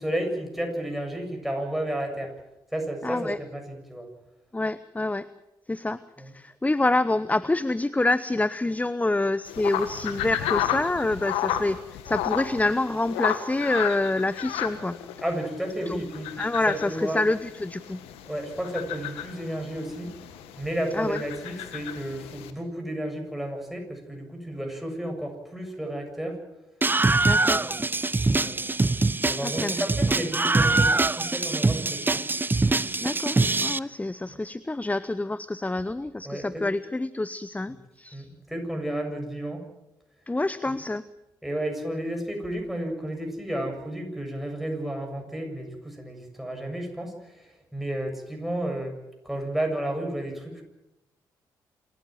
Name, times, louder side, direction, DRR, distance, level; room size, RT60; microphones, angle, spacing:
voice 1, 0.0-2.3 2.7-4.1 6.2-6.3 15.2-16.3 16.7-17.2 18.2-20.1 20.6-26.4 27.3-27.9 28.4-28.6 29.3-32.3 34.3-34.4 36.2-36.7 38.1-39.6 40.7-40.8 41.4-49.0 49.2-50.6, right 1 dB, ahead, 3 dB, 7.6 m, -32 dB
voice 2, 3.0-3.4 4.5-5.3 5.7-11.8 12.0-15.0 15.9-16.0 16.4-18.0 20.9-21.2 27.3-27.7 29.4-30.2 33.0-38.3 40.3-41.0, left 2 dB, 15° left, 17 dB, 0.7 m, -27 dB
sound 1, 9.4-22.5, left 11 dB, 80° left, 1.7 m, -33 dB
Screaming, 26.8-33.8, right 3 dB, 20° right, 0.7 m, -23 dB
27.0 x 14.5 x 7.7 m, 0.92 s
hypercardioid pair, 40°, 10 cm